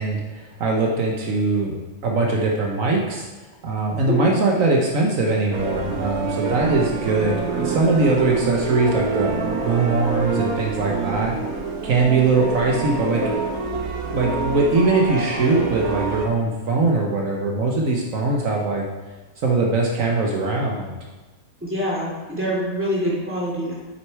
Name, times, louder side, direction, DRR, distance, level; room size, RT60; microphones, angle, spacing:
voice 1, 0.0-3.3 3.6-11.3 11.8-13.2 14.1-18.8 19.4-21.0, right 3 dB, 70° right, 0 dB, 1.4 m, -21 dB
voice 2, 4.0-4.4 21.6-23.8, equal, 10° right, -6 dB, 2.5 m, -25 dB
sound 1, 5.5-16.3, right 4 dB, 85° right, 1.5 m, -26 dB
8.4 x 6.5 x 4.6 m, 1.2 s
omnidirectional pair, 1.5 m